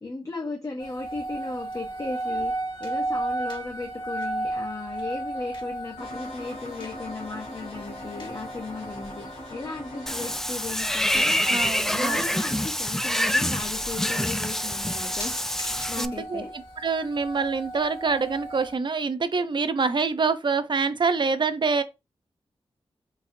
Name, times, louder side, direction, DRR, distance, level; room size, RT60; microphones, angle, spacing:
voice 1, 0.0-2.5 2.8-9.2 9.5-11.4 11.9-15.4 15.9-16.5, left 3 dB, 35° left, 1.0 m, -36 dB
sound 1, 0.8-18.7, right 1 dB, 50° left, 2.2 m, -36 dB
sound 2, 6.0-10.4, left 1 dB, 85° left, 2.0 m, -40 dB
Water / Bathtub (filling or washing), 10.1-16.1, left 1 dB, 5° left, 0.4 m, -26 dB
voice 2, 11.4-12.2 16.0-21.8, right 4 dB, 50° right, 0.6 m, -26 dB
4.1 x 4.0 x 2.7 m
wide cardioid pair, 70°, 10 cm